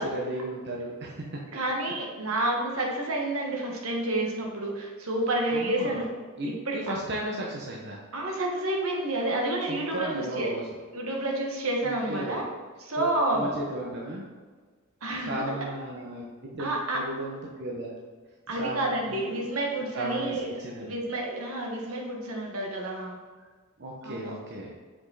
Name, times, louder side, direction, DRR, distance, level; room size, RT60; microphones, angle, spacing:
voice 1, 0.0-1.4 1.8-1.9 5.5-6.0 6.4-8.0 9.7-10.6 11.8-12.4 13.0-14.2 15.2-16.7 16.9-17.9 18.5-19.3 19.9-20.9 23.8-24.7, right 1 dB, 50° right, -2 dB, 0.9 m, -35 dB
voice 2, 1.5-6.1 6.6-6.8 8.1-10.5 10.9-12.4 12.8-13.5 15.0-15.5 16.6-17.0 18.5-20.5 20.8-23.2 24.0-24.3, right 1 dB, 80° right, 0 dB, 1.5 m, -29 dB
6.2 x 5.1 x 4.1 m, 1.5 s
head